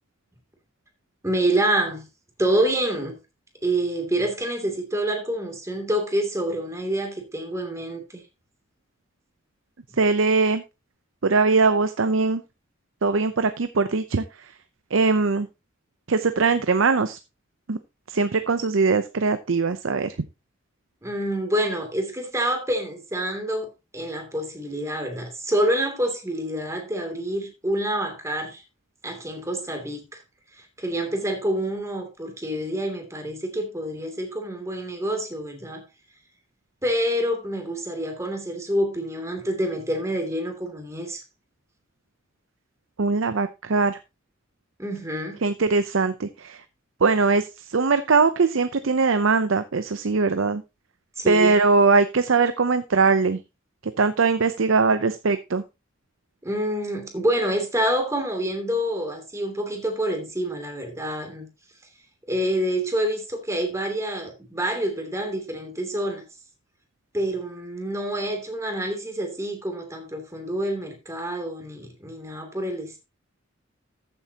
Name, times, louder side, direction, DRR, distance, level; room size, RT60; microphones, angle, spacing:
voice 1, 1.2-2.0 2.4-3.2 3.6-8.2 21.0-23.7 23.9-28.6 29.0-30.2 30.8-35.8 36.8-41.2 44.8-45.4 51.2-51.6 56.4-61.5 62.3-66.2 67.1-73.0, right 1 dB, 15° right, 2.8 m, -27 dB
voice 2, 10.0-10.6 11.2-12.4 13.0-14.2 14.9-15.5 16.1-17.2 17.7-17.8 18.1-20.1 43.0-44.0 45.4-46.6 47.0-50.6 51.3-53.4 54.0-55.6, right 4 dB, 75° right, 0.7 m, -21 dB
14.0 x 7.9 x 2.9 m
head